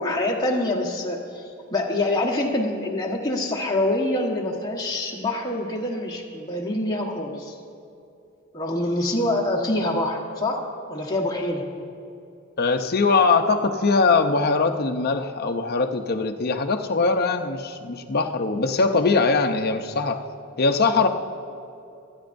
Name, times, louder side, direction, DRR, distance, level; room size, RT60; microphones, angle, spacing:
voice 1, 0.0-1.4 1.7-7.6 8.5-10.6 10.9-11.6, left 1 dB, 20° left, -2 dB, 1.3 m, -25 dB
voice 2, 12.6-20.2 20.6-21.1, left 4 dB, 50° left, 6 dB, 0.7 m, -21 dB
24.5 x 9.6 x 2.6 m, 2.7 s
head